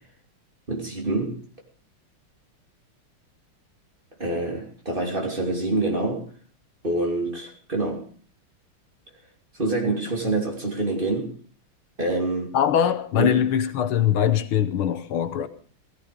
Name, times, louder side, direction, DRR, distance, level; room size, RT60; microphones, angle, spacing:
voice 1, 0.7-1.4 4.2-6.2 6.8-8.0 9.6-11.3 12.0-12.6 13.2-13.4, right 2 dB, 25° right, 3.0 m, -26 dB
voice 2, 12.5-15.5, left 9 dB, 80° left, 1.8 m, -22 dB
17.0 x 14.0 x 5.1 m
omnidirectional pair, 2.4 m